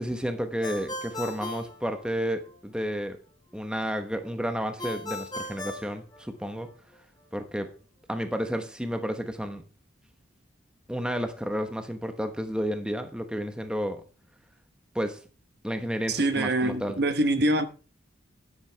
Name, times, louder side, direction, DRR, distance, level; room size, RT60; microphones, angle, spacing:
voice 1, 0.0-3.2 3.5-6.7 7.3-7.7 8.1-9.6 10.9-14.0 14.9-15.2 15.6-16.9, equal, 5° right, 1.1 m, -31 dB
Ringtone, 0.6-2.6 4.8-6.8, left 1 dB, 20° left, 2.4 m, -38 dB
voice 2, 16.1-17.7, right 1 dB, 55° right, 1.1 m, -24 dB
11.0 x 10.5 x 3.4 m
head